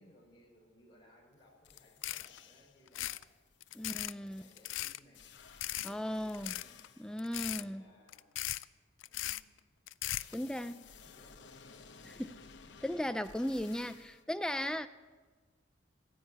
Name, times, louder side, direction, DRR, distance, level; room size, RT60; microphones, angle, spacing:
voice 1, 0.0-3.2 3.7-5.3 5.7-6.9 7.5-8.3 9.0-9.6 10.2-12.2, left 1 dB, 25° left, 4.8 m, -63 dB
sound 1, 1.3-1.4 1.6-2.9 3.2-7.2 10.1-14.2, left 6 dB, 70° left, 0.9 m, -56 dB
sound 2, 1.7-1.8 2.0-2.4 2.9-3.2 3.6-4.1 4.6-5.0 5.6-5.9 6.3-6.9 7.2-7.6 8.1-8.6 9.0-9.4 9.9-10.3, left 15 dB, 90° left, 0.4 m, -38 dB
voice 2, 3.7-4.4 5.8-6.6 7.0-7.9 10.3-10.8 12.0-12.4 12.8-14.9, left 1 dB, 5° left, 0.5 m, -37 dB
14.0 x 10.0 x 9.3 m
head